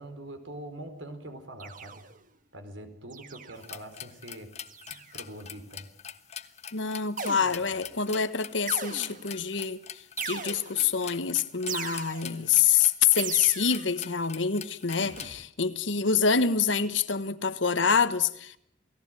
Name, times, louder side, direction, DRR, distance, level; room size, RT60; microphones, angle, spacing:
voice 1, 0.0-2.0 2.5-4.5 4.9-5.9, right 1 dB, 80° right, 4.6 m, -43 dB
sound 1, 1.6-2.3 3.1-3.7 4.6-5.2 7.2-7.9 8.7-9.4 10.2-11.0 11.7-12.5 13.2-14.0 15.0-15.4, right 6 dB, 45° right, 1.6 m, -39 dB
sound 2, 3.6-15.3, left 9 dB, 35° left, 1.3 m, -43 dB
voice 2, 6.7-9.8 10.2-18.6, left 6 dB, 75° left, 1.4 m, -26 dB
29.0 x 18.0 x 9.2 m
head